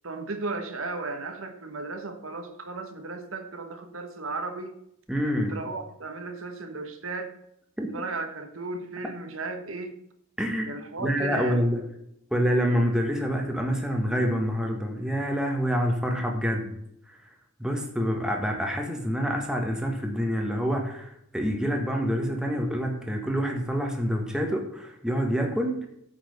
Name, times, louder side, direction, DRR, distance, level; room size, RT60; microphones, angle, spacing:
voice 1, 0.0-4.8 5.4-7.3 7.9-10.0 10.7-11.6, right 3 dB, 65° right, 7 dB, 1.3 m, -35 dB
voice 2, 5.1-5.6 7.8-7.9 10.4-10.7 11.0-11.8 12.3-16.7 17.6-25.9, equal, 5° right, 2 dB, 1.5 m, -27 dB
8.9 x 5.9 x 6.7 m, 0.75 s
head